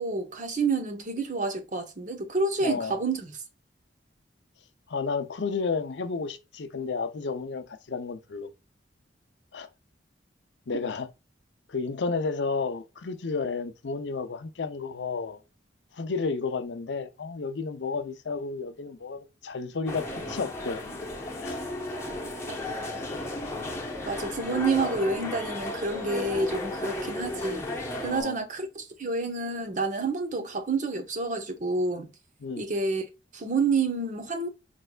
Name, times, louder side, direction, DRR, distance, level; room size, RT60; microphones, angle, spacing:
voice 1, 0.0-3.3 22.5-22.6 24.1-27.6 28.0-32.1 32.6-33.0 33.3-34.5, right 3 dB, 45° right, 0.9 m, -29 dB
voice 2, 2.6-3.0 4.9-8.5 9.5-9.7 10.7-11.1 11.7-15.4 15.9-20.8 21.4-21.6 28.0-28.4 32.4-32.7, left 4 dB, 75° left, 0.6 m, -32 dB
sound 1, 19.9-28.2, left 2 dB, 15° left, 0.9 m, -34 dB
5.2 x 3.3 x 2.3 m
head